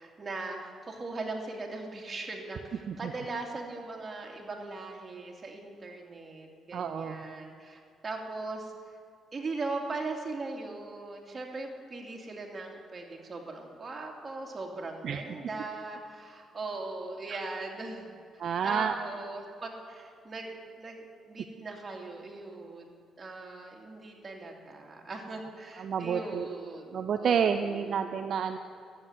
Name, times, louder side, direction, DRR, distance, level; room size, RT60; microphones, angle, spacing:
voice 1, 0.0-8.7 9.3-18.2 18.6-27.9, right 3 dB, 30° right, 0 dB, 2.5 m, -39 dB
voice 2, 6.7-7.2 15.0-15.2 17.3-17.4 18.4-18.9 25.8-26.5 26.9-28.6, right 7 dB, 60° right, 7 dB, 0.6 m, -29 dB
12.0 x 7.9 x 9.3 m, 2.4 s
cardioid pair, 90°, 0 cm